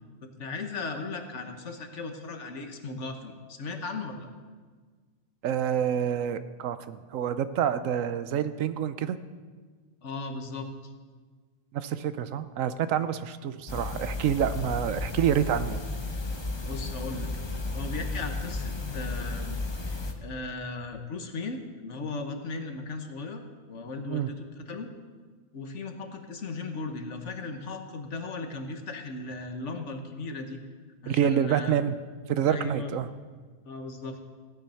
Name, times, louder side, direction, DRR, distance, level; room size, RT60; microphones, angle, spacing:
voice 1, 0.2-4.3 10.0-10.7 16.7-17.3 17.7-19.6 19.9-23.4 23.7-24.9 25.5-30.6 31.0-31.8 32.5-32.9 33.6-34.2, left 3 dB, 65° left, 5 dB, 1.5 m, -37 dB
voice 2, 5.4-9.2 11.7-15.8 24.1-24.3 31.1-31.9 32.3-33.1, right 9 dB, 80° right, 12 dB, 1.0 m, -27 dB
sound 1, 13.7-20.1, left 2 dB, 25° left, 0.8 m, -33 dB
16.0 x 9.2 x 5.6 m, 1.5 s
omnidirectional pair, 1.4 m